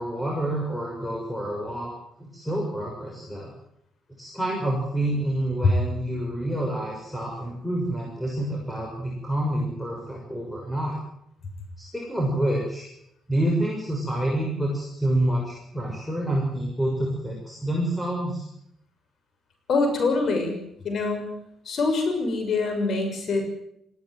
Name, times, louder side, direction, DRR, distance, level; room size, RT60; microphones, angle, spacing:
voice 1, 0.0-1.9 2.2-3.5 4.2-11.0 11.8-12.9 13.3-18.4, right 1 dB, 10° left, -2 dB, 6.6 m, -28 dB
voice 2, 19.7-21.3 21.6-23.5, left 3 dB, 60° left, 6 dB, 6.4 m, -25 dB
20.0 x 16.5 x 9.4 m, 0.76 s
cardioid pair, 90°, 0 cm